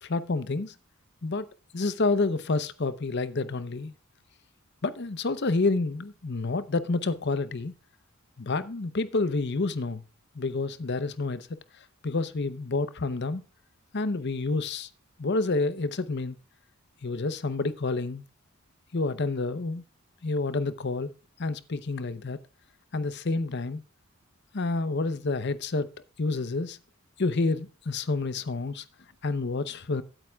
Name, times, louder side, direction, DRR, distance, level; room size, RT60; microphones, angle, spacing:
voice 1, 0.0-0.7 1.2-1.5 1.7-3.9 4.8-7.7 8.4-10.0 10.3-11.6 12.0-13.4 13.9-14.9 15.2-16.3 17.0-18.2 18.9-19.8 20.2-21.1 21.4-22.4 22.9-23.8 24.5-25.9 26.2-26.8 27.2-28.8 29.2-30.0, left 3 dB, 50° left, 0.7 m, -29 dB
16.5 x 9.0 x 2.3 m
head